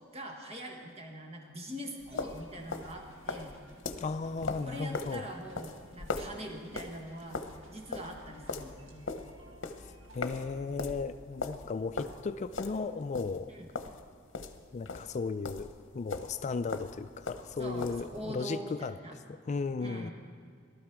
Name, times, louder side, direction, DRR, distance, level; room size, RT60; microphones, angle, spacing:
voice 1, 0.1-3.5 4.6-7.4 7.7-9.0 13.5-13.7 17.6-19.2 19.8-20.1, equal, 30° right, 2 dB, 1.4 m, -43 dB
sound 1, 2.0-15.8 16.1-18.3, left 3 dB, 65° left, 0.9 m, -40 dB
sound 2, 2.1-10.5, right 1 dB, 70° right, 1.9 m, -58 dB
voice 2, 4.0-5.3 10.1-13.5 14.7-18.9 19.3-20.1, left 4 dB, 35° left, 11 dB, 0.3 m, -35 dB
18.5 x 12.5 x 4.6 m, 2.2 s
head